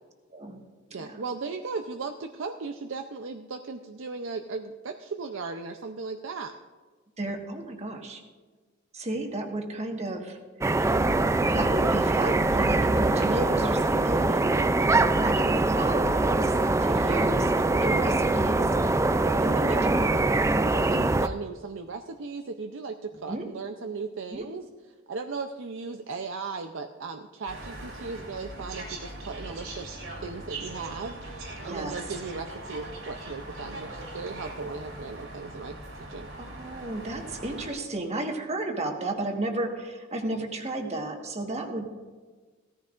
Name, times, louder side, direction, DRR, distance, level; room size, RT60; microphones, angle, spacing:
voice 1, 0.9-6.5 17.1-17.3 20.6-24.7 25.1-29.9 30.2-36.3, right 4 dB, 70° right, 5 dB, 0.6 m, -37 dB
voice 2, 7.2-8.2 8.9-10.7 11.5-16.5 16.8-17.5 17.8-18.7 19.4-20.0 23.3-23.5 24.3-24.4 31.6-32.0 36.4-41.9, right 2 dB, 35° right, 3 dB, 1.4 m, -33 dB
sound 1, 10.6-21.3, right 2 dB, 15° right, 0.3 m, -23 dB
sound 2, 27.5-37.7, right 2 dB, 90° right, 3.6 m, -40 dB
16.5 x 14.0 x 2.5 m, 1.4 s
head